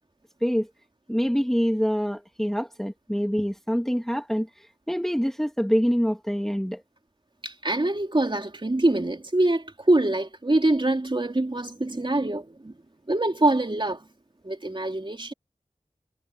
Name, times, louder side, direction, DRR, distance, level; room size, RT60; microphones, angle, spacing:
voice 1, 1.1-4.5 4.9-6.8, equal, 5° left, 2.3 m, -25 dB
voice 2, 7.4-12.7 13.1-14.0 14.4-15.3, right 2 dB, 35° right, 3.2 m, -24 dB
wide cardioid pair, 65°, 13 cm